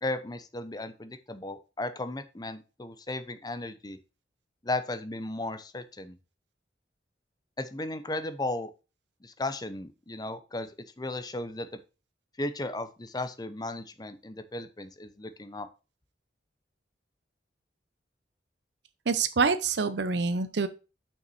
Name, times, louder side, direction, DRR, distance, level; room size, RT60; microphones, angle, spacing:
voice 1, 0.0-4.0 4.6-6.2 7.6-8.7 9.2-10.7 11.0-11.7 12.4-15.7, left 2 dB, 20° left, 11 dB, 0.7 m, -35 dB
voice 2, 19.1-20.7, right 4 dB, 65° right, 12 dB, 0.6 m, -26 dB
6.8 x 5.9 x 4.2 m, 0.31 s
head